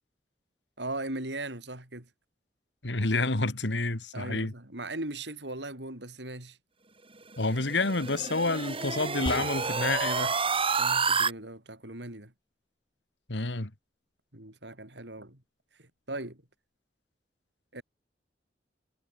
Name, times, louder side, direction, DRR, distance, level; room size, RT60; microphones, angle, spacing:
voice 1, 0.8-2.1 4.1-6.6 10.8-12.3 14.3-15.4 15.8-16.4 17.7-17.8, right 2 dB, 75° right, 6.9 m, -38 dB
voice 2, 2.8-4.5 7.4-10.3 13.3-13.7, left 2 dB, 90° left, 2.3 m, -29 dB
sound 1, 7.3-11.3, right 5 dB, 30° right, 6.5 m, -29 dB
sound 2, 9.3-10.0, left 1 dB, 30° left, 5.5 m, -37 dB
head